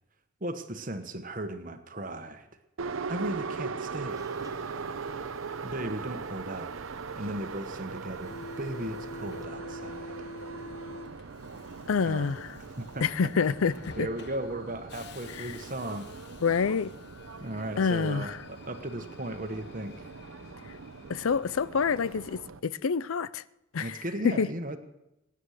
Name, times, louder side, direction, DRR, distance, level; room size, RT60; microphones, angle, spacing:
voice 1, 0.4-2.5 3.1-4.2 5.6-6.7 7.2-10.1 12.0-13.1 13.6-13.7 14.0-16.1 17.4-20.1 23.8-24.8, right 1 dB, 40° right, 1.2 m, -36 dB
Subway metro underground, 2.8-22.6, right 4 dB, 85° right, 0.7 m, -40 dB
sound 1, 4.1-9.5, right 1 dB, 15° right, 0.9 m, -52 dB
Subway metro underground 2, 8.2-22.5, left 2 dB, 55° left, 0.9 m, -48 dB
voice 2, 11.9-12.5 13.0-14.1 15.4-15.5 16.4-16.9 17.8-18.4 21.1-23.4 23.7-24.0 24.2-24.5, left 5 dB, 90° left, 0.5 m, -27 dB
22.0 x 10.0 x 6.6 m
head